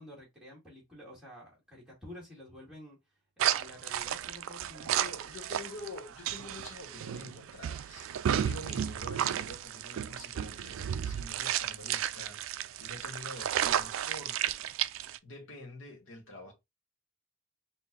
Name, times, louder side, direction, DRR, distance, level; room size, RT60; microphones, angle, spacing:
voice 1, 0.0-3.0 3.4-5.1, left 1 dB, ahead, 2.1 m, -50 dB
sound 1, 3.4-15.2, right 10 dB, 85° right, 0.3 m, -33 dB
voice 2, 5.0-14.8 15.2-16.5, left 2 dB, 80° left, 1.4 m, -47 dB
5.8 x 2.6 x 2.4 m
head